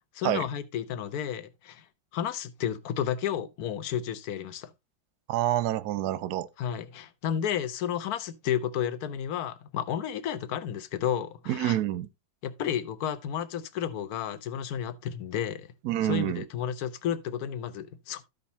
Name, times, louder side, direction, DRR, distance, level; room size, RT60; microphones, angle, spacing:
voice 1, 0.1-1.8 2.1-4.7 6.6-11.8 12.4-15.7 16.1-18.2, left 9 dB, 60° left, 1.1 m, -32 dB
voice 2, 5.3-6.5 11.5-12.1 15.8-16.4, right 13 dB, 65° right, 1.1 m, -27 dB
14.0 x 5.2 x 2.8 m
omnidirectional pair, 2.2 m